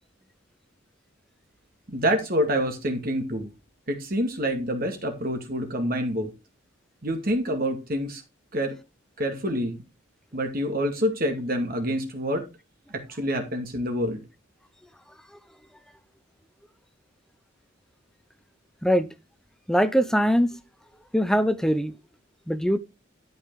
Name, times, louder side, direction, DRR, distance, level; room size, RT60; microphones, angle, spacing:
voice 1, 1.9-3.5 3.9-6.3 7.0-8.2 8.5-8.7 9.2-9.8 10.3-12.5 12.9-14.2, equal, 45° right, 2.2 m, -27 dB
voice 2, 19.7-20.6 21.1-21.9 22.5-22.8, equal, 5° left, 0.8 m, -22 dB
12.0 x 5.6 x 4.8 m
head